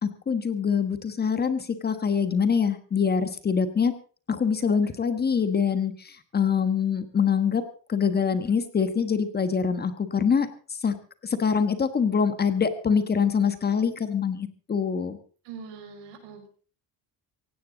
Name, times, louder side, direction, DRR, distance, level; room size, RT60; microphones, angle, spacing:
voice 1, 0.0-3.9 4.3-7.6 7.9-10.5 10.8-10.9 11.2-15.2, left 6 dB, 25° left, 11 dB, 1.3 m, -24 dB
voice 2, 15.4-16.6, right 6 dB, 90° right, 4 dB, 6.2 m, -43 dB
17.5 x 16.5 x 3.9 m, 0.40 s
cardioid pair, 165°, 42 cm